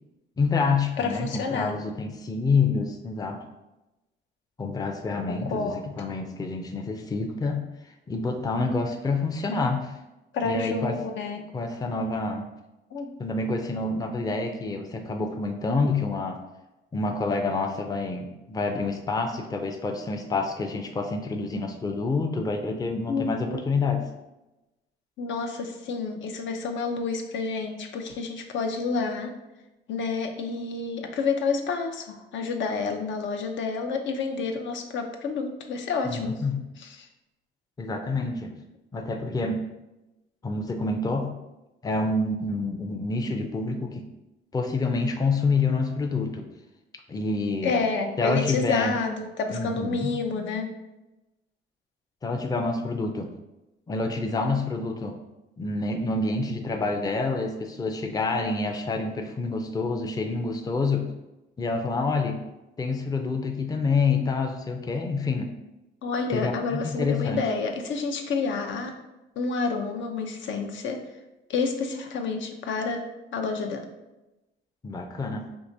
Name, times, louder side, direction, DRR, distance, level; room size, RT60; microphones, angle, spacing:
voice 1, 0.4-3.4 4.6-7.6 8.1-9.9 10.4-10.9 11.5-12.5 13.2-16.4 16.9-24.0 36.0-36.6 37.8-38.5 38.9-39.6 40.4-41.3 41.8-44.0 44.5-46.5 47.1-47.7 48.2-49.0 49.5-50.1 52.2-53.3 53.9-55.1 55.6-61.0 61.6-62.4 62.8-65.5 66.3-67.4 74.8-75.4, left 3 dB, 20° left, 4 dB, 0.4 m, -27 dB
voice 2, 1.0-1.8 5.3-5.8 10.3-11.5 12.9-13.1 23.1-23.6 25.2-29.3 29.9-36.3 36.8-37.0 47.6-50.7 66.0-68.9 69.4-71.0 71.5-73.0 73.3-73.8, left 4 dB, 70° left, 4 dB, 0.6 m, -29 dB
4.6 x 2.9 x 2.7 m, 0.99 s
cardioid pair, 90°, 20 cm